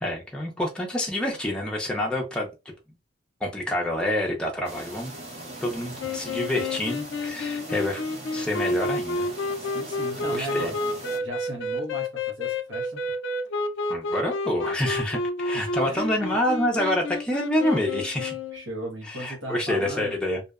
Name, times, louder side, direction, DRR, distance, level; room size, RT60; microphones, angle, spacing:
voice 1, 0.0-2.5 3.4-5.1 5.6-8.0 8.3-9.2 10.3-10.7 13.9-18.4 19.1-20.4, left 1 dB, 5° left, -1 dB, 0.5 m, -27 dB
sound 1, 4.6-11.2, right 1 dB, 35° right, 0.6 m, -40 dB
sound 2, 6.0-18.6, left 2 dB, 70° left, 0.4 m, -30 dB
voice 2, 9.6-10.8 11.2-12.1 12.4-13.0 15.5-16.4 18.5-20.1, right 1 dB, 75° right, -1 dB, 0.8 m, -36 dB
2.6 x 2.1 x 2.3 m, 0.27 s
head